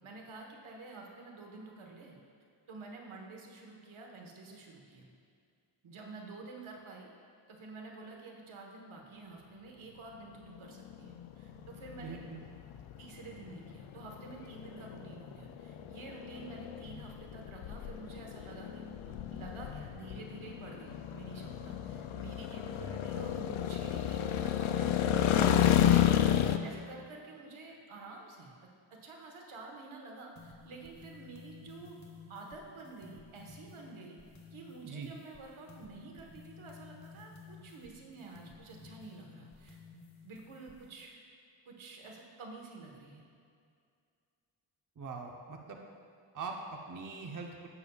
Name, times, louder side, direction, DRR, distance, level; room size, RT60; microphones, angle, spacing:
voice 1, 0.0-2.2 2.7-5.1 5.8-7.1 7.5-12.2 13.0-32.0 32.3-34.2 34.5-39.8 40.2-41.2 41.6-43.3, right 3 dB, 85° right, 0 dB, 1.4 m, -49 dB
sound 1, 10.5-26.6, left 10 dB, 90° left, 0.6 m, -31 dB
voice 2, 12.0-12.4 34.8-35.1 45.0-45.8 46.3-47.7, right 4 dB, 40° right, 1 dB, 0.8 m, -42 dB
sound 2, 30.4-41.0, left 4 dB, 35° left, 1.2 m, -54 dB
16.5 x 6.9 x 2.4 m, 2.3 s
wide cardioid pair, 100°, 47 cm